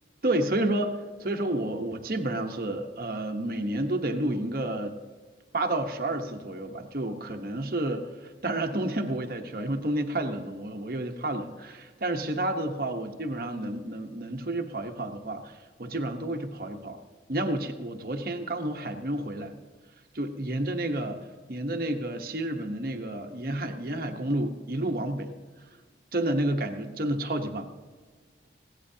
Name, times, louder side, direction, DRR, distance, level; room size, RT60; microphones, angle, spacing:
voice 1, 0.2-4.9 5.5-17.0 17.3-19.6 20.1-21.2 21.5-25.3 26.1-27.7, right 1 dB, 50° right, 5 dB, 1.0 m, -30 dB
21.5 x 16.5 x 2.8 m, 1.5 s
head